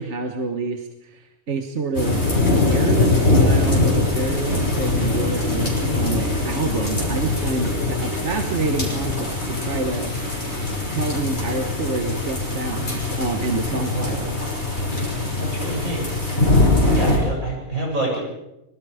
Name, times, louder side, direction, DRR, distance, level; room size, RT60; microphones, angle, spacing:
voice 1, 0.0-2.2 2.5-10.6 10.9-14.3 16.7-17.3, right 3 dB, 55° right, 6 dB, 1.6 m, -28 dB
sound 1, 1.9-17.2, left 2 dB, 50° left, 6.2 m, -22 dB
voice 2, 13.9-14.6 15.4-16.1 16.9-18.2, right 2 dB, 80° right, -2 dB, 8.3 m, -27 dB
25.0 x 22.0 x 5.0 m, 0.89 s
omnidirectional pair, 1.4 m